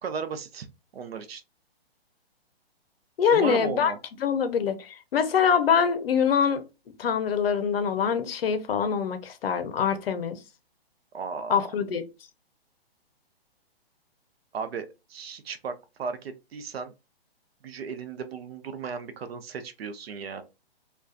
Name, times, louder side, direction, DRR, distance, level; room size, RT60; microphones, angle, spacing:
voice 1, 0.0-0.7 0.9-1.4 3.3-4.0 11.1-11.6 14.5-15.7 16.0-16.9 17.6-20.4, right 6 dB, 70° right, 0.6 m, -35 dB
voice 2, 3.2-3.9 4.2-6.6 7.0-10.4 11.5-12.0, left 7 dB, 65° left, 0.6 m, -24 dB
2.5 x 2.3 x 2.2 m
hypercardioid pair, 160°, 31 cm